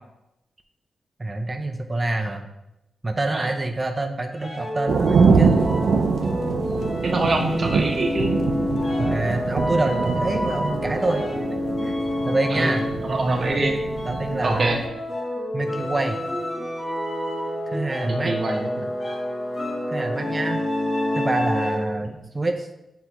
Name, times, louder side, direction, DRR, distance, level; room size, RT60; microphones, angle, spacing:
voice 1, 1.2-2.5 3.0-5.6 9.0-11.2 11.8-12.0 12.2-12.8 13.5-13.6 14.0-14.7 15.5-16.2 17.7-18.3 19.9-20.6 21.1-22.1 22.3-22.7, right 2 dB, 20° right, 4 dB, 0.5 m, -26 dB
sound 1, 4.3-22.1, left 1 dB, 30° left, 0.8 m, -28 dB
sound 2, 4.9-14.9, right 5 dB, 80° right, 0.5 m, -24 dB
voice 2, 7.0-8.4 12.5-12.7 13.1-13.8 14.4-14.8 18.0-18.7, right 2 dB, 40° right, 0 dB, 0.9 m, -24 dB
7.8 x 4.5 x 2.9 m, 0.90 s
wide cardioid pair, 135°, 0 cm